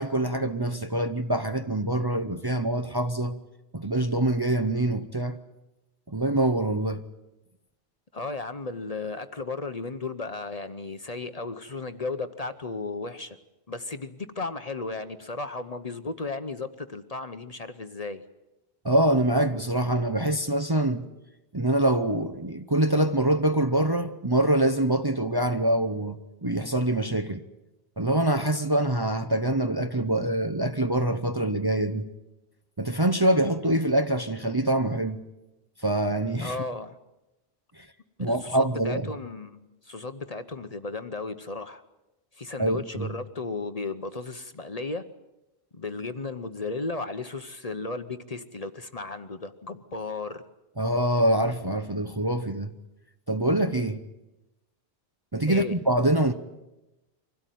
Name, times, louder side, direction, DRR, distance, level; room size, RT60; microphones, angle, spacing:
voice 1, 0.0-3.4 3.7-5.4 6.1-7.0 18.8-21.1 21.5-27.4 28.0-32.1 32.8-35.2 35.8-36.5 37.8-37.9 38.2-39.1 42.6-43.1 50.8-52.7 53.3-54.0 55.3-56.3, right 1 dB, 25° right, 0.8 m, -25 dB
voice 2, 8.1-13.4 13.7-18.2 36.4-37.0 38.2-41.8 42.3-45.1 45.7-50.4 55.5-55.7, left 3 dB, 35° left, 1.0 m, -35 dB
24.5 x 17.0 x 9.2 m
omnidirectional pair, 1.1 m